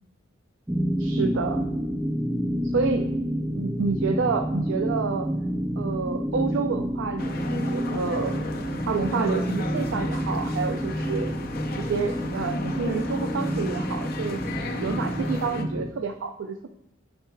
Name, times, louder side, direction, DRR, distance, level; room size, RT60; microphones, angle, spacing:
sound 1, 0.7-15.9, equal, 5° right, 0.3 m, -29 dB
voice 1, 1.0-1.6 2.7-3.1 3.5-5.3 5.8-8.3 8.9-11.3 11.8-14.4 14.8-16.7, right 5 dB, 80° right, 6 dB, 0.4 m, -29 dB
sound 2, 7.2-15.6, left 2 dB, 50° left, 0.6 m, -35 dB
10.5 x 4.6 x 2.3 m, 0.89 s
head